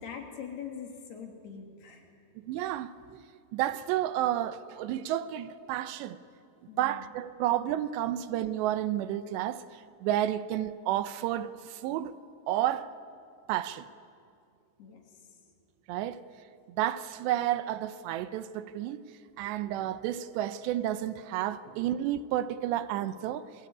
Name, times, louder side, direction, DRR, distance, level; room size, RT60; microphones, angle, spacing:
voice 1, 0.0-2.1 6.7-7.1 14.8-15.4, left 7 dB, 65° left, 4.8 m, -43 dB
voice 2, 2.4-3.2 3.5-6.2 6.8-9.6 10.0-12.1 12.5-12.9 13.5-13.9 15.9-16.2 16.7-19.0 19.4-23.5, right 12 dB, 85° right, 3.0 m, -31 dB
26.0 x 24.0 x 9.6 m
omnidirectional pair, 5.0 m